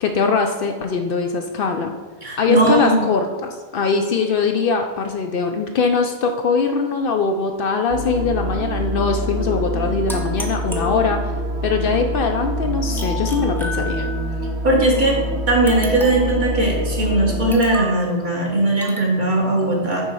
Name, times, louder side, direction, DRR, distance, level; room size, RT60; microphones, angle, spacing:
voice 1, 0.0-1.9 2.4-11.3 11.6-14.1, left 5 dB, 65° left, 5 dB, 0.7 m, -21 dB
voice 2, 2.2-3.1 14.6-15.2 15.5-20.0, right 1 dB, 45° right, -2 dB, 1.4 m, -18 dB
sound 1, 7.9-17.5, right 1 dB, 85° right, 1.1 m, -25 dB
sound 2, 10.1-11.5 13.0-14.4 15.7-16.4 17.5-18.0 18.8-19.2, left 2 dB, 5° left, 0.6 m, -32 dB
6.2 x 4.0 x 5.4 m, 1.3 s
omnidirectional pair, 1.1 m